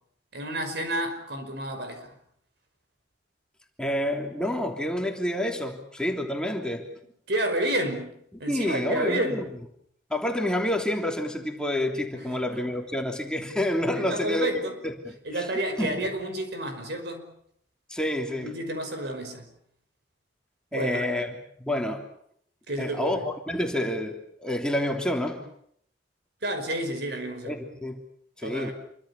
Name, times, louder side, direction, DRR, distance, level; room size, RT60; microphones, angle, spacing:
voice 1, 0.3-2.1 7.3-9.4 12.5-12.6 13.9-14.8 15.2-17.3 18.4-19.5 20.7-21.1 22.7-23.2 26.4-27.6 28.4-28.7, right 1 dB, 65° right, 5.5 m, -30 dB
voice 2, 3.8-6.8 8.5-9.4 10.1-14.5 14.8-15.5 15.8-16.0 17.9-18.5 20.7-21.3 21.6-22.0 22.8-24.1 24.4-25.4 27.4-28.0 28.4-28.7, left 1 dB, 5° left, 3.2 m, -28 dB
28.0 x 24.5 x 7.1 m
head